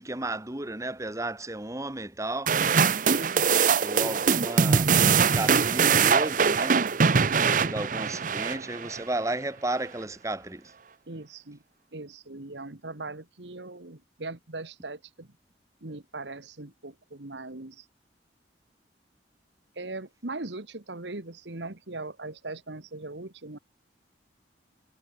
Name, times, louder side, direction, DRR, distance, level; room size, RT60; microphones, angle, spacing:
voice 1, 0.0-2.6 3.8-6.8 7.4-10.7, right 2 dB, 15° right, 1.4 m, -33 dB
sound 1, 2.5-9.0, right 6 dB, 45° right, 0.7 m, -22 dB
voice 2, 11.1-11.6 11.9-15.3 15.8-17.9 19.8-23.6, right 2 dB, 80° right, 1.8 m, -40 dB
head